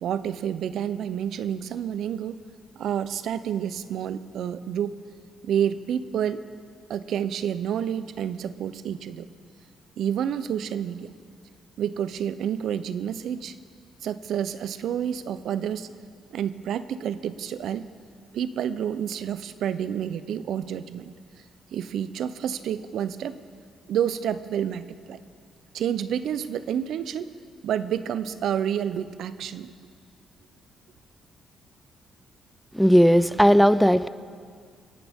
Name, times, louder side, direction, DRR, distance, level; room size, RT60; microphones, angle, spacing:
voice 1, 0.0-2.4 2.8-5.0 5.4-6.4 6.9-9.3 10.0-11.1 11.8-13.6 14.0-15.9 16.3-17.9 18.3-21.1 21.7-23.4 23.9-25.2 25.7-27.3 27.6-29.7, right 9 dB, 75° right, 14 dB, 0.5 m, -29 dB
voice 2, 32.7-34.1, equal, ahead, 15 dB, 0.4 m, -17 dB
27.5 x 11.0 x 3.6 m, 2.1 s
cardioid pair, 90°, 0 cm